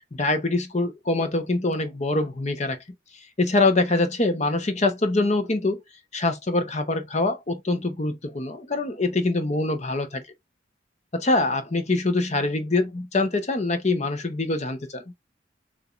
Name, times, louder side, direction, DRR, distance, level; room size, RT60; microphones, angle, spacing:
voice 1, 0.1-2.8 3.4-5.8 6.1-10.2 11.1-15.0, left 2 dB, 40° left, 1.0 m, -24 dB
6.8 x 2.8 x 2.5 m
head